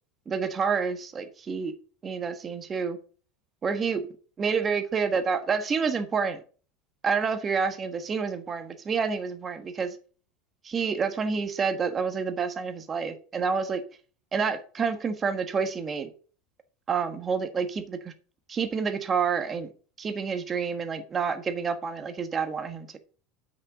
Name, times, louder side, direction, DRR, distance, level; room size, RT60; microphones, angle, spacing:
voice 1, 0.3-1.7 2.0-3.0 3.6-4.1 4.4-6.4 7.0-9.9 10.6-13.8 14.3-16.1 16.9-18.1 18.5-19.7 20.0-23.0, right 5 dB, 25° right, 8 dB, 1.3 m, -28 dB
7.8 x 6.4 x 4.8 m, 0.40 s
supercardioid pair, 120°, 0 cm